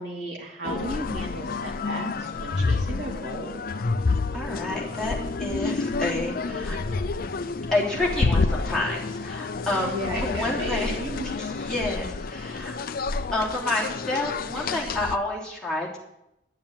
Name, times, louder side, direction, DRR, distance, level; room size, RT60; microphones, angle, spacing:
voice 1, 0.0-3.6 9.8-11.4 13.1-13.3, right 1 dB, 75° right, -2 dB, 2.9 m, -34 dB
sound 1, 0.6-15.2, left 3 dB, 55° left, 0.6 m, -29 dB
voice 2, 4.3-6.8 7.7-10.9 11.4-12.7 13.3-16.0, left 2 dB, 5° left, -6 dB, 3.4 m, -29 dB
11.5 x 7.6 x 8.8 m, 0.86 s
head